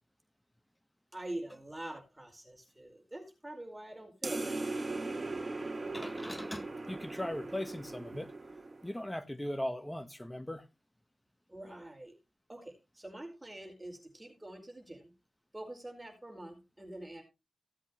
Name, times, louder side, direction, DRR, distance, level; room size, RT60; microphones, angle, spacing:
voice 1, 1.1-4.6 8.1-8.2 11.5-12.1 12.5-15.1 15.5-17.2, right 1 dB, 15° right, 4.5 m, -45 dB
sound 1, 4.2-9.1, right 2 dB, 35° right, 1.7 m, -39 dB
voice 2, 5.8-8.3 8.8-10.7, left 1 dB, 10° left, 1.2 m, -39 dB
16.5 x 8.0 x 3.1 m
cardioid pair, 45°, 0 cm